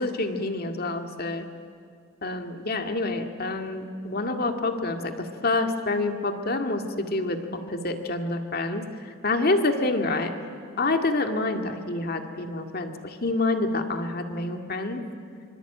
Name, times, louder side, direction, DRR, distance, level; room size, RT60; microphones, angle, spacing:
voice 1, 0.0-1.5 2.2-8.9 9.2-10.3 10.8-15.0, left 2 dB, 45° left, 5 dB, 2.1 m, -27 dB
25.5 x 24.5 x 9.2 m, 2.3 s
head